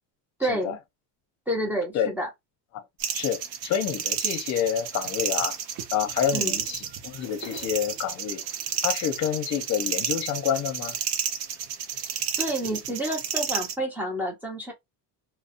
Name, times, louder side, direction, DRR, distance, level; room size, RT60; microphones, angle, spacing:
voice 1, 0.4-0.8 1.5-2.3 6.3-6.6 12.4-14.7, right 1 dB, 5° right, 0.4 m, -29 dB
sound 1, 3.0-13.7, right 8 dB, 60° right, 0.5 m, -31 dB
voice 2, 3.1-5.6 5.9-8.4 8.8-11.0, left 9 dB, 40° left, 0.6 m, -28 dB
2.6 x 2.0 x 2.4 m
cardioid pair, 170°, 43 cm